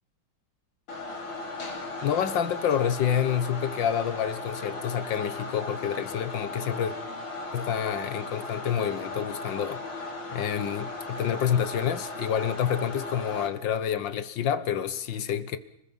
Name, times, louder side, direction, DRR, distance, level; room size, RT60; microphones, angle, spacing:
sound 1, 0.9-13.5, left 2 dB, 80° left, 3.8 m, -37 dB
voice 1, 2.0-6.9 7.5-9.8 10.3-15.6, left 9 dB, 65° left, 1.8 m, -28 dB
29.5 x 20.5 x 5.6 m
omnidirectional pair, 2.2 m